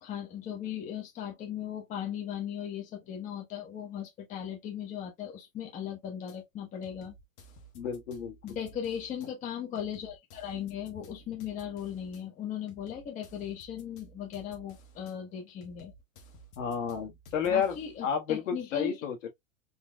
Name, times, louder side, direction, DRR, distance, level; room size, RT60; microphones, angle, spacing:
voice 1, 0.0-7.1 8.4-15.9 17.4-19.0, left 9 dB, 20° left, 0.9 m, -38 dB
sound 1, 6.3-6.4 6.8-9.3 9.7-12.2 12.7-15.1 15.6-18.0, right 1 dB, 40° left, 1.2 m, -54 dB
voice 2, 7.7-8.6 16.6-17.8 18.0-19.3, left 7 dB, 65° left, 1.6 m, -31 dB
3.9 x 3.2 x 2.2 m
hypercardioid pair, 145°, 40 cm